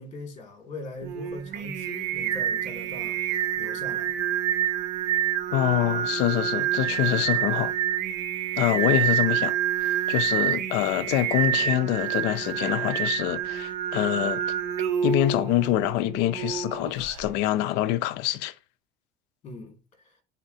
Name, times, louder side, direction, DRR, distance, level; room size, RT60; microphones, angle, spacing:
voice 1, 0.0-3.2 3.6-4.2 19.4-19.8 20.0-20.2, left 2 dB, 40° left, 2.3 m, -40 dB
Singing, 1.0-17.3, right 10 dB, 65° right, 0.9 m, -28 dB
voice 2, 5.5-7.7 8.6-9.6 9.8-14.4 15.0-18.5, left 14 dB, 70° left, 0.6 m, -25 dB
10.0 x 4.2 x 2.7 m
cardioid pair, 150°, 18 cm